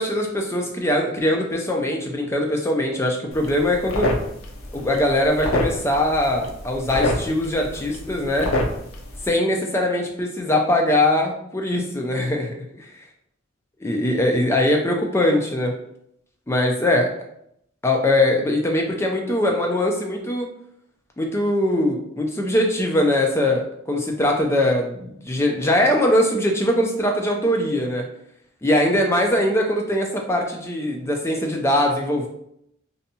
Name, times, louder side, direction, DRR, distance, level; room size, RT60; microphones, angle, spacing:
voice 1, 0.0-4.1 4.7-8.5 9.2-12.5 13.8-15.7 16.5-17.1 17.8-20.5 21.2-28.0 28.6-32.3, left 1 dB, 10° left, 1 dB, 0.3 m, -21 dB
sound 1, 3.3-9.3, left 1 dB, 80° left, 0.5 m, -28 dB
2.6 x 2.2 x 2.7 m, 0.74 s
head